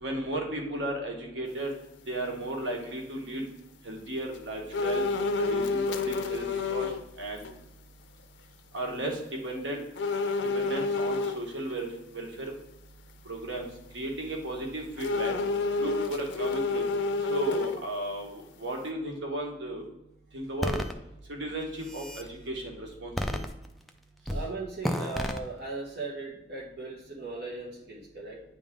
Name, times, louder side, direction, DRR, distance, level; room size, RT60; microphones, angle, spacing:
voice 1, 0.0-1.7 2.1-3.4 3.8-5.0 5.4-6.9 7.2-7.4 8.7-9.8 10.5-11.9 12.1-12.3 13.2-13.7 13.9-15.4 15.8-16.8 17.3-19.8 20.3-20.8 21.3-23.1, right 1 dB, 85° right, 0 dB, 1.5 m, -34 dB
sound 1, 4.7-7.0 7.4-7.5 10.0-11.4 15.0-18.0 18.4-18.5, left 3 dB, 85° left, 0.5 m, -29 dB
sound 2, 20.6-20.9 21.6-22.3 23.2-23.9 24.3-24.5 24.8-25.4, equal, ahead, 0.4 m, -31 dB
voice 2, 24.3-28.4, right 3 dB, 65° right, -4 dB, 1.2 m, -38 dB
9.1 x 3.6 x 3.6 m, 0.89 s
head